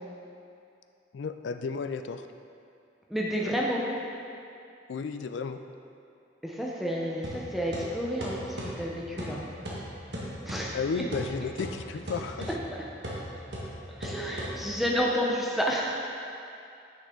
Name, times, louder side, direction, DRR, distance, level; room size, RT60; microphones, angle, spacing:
voice 1, 1.1-2.3 4.9-5.6 10.7-12.5, left 5 dB, 75° left, 8 dB, 0.4 m, -33 dB
voice 2, 3.1-3.8 6.4-8.4 8.8-9.4 10.5-10.8 12.7-12.8 13.9-16.0, equal, ahead, -4 dB, 0.7 m, -30 dB
sound 1, 7.2-15.0, equal, 65° right, 1.7 m, -38 dB
9.9 x 6.3 x 3.8 m, 2.6 s
head